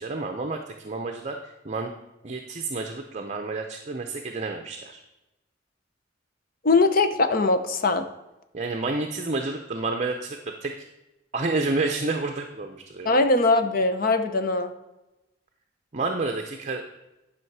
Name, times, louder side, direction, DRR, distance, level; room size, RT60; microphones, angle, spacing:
voice 1, 0.0-1.9 2.2-5.0 8.5-10.7 11.3-13.2 15.9-16.8, right 3 dB, 40° right, 4 dB, 0.7 m, -30 dB
voice 2, 6.6-8.1 13.0-14.7, left 3 dB, 50° left, 8 dB, 0.8 m, -21 dB
10.5 x 5.7 x 4.7 m, 0.98 s
head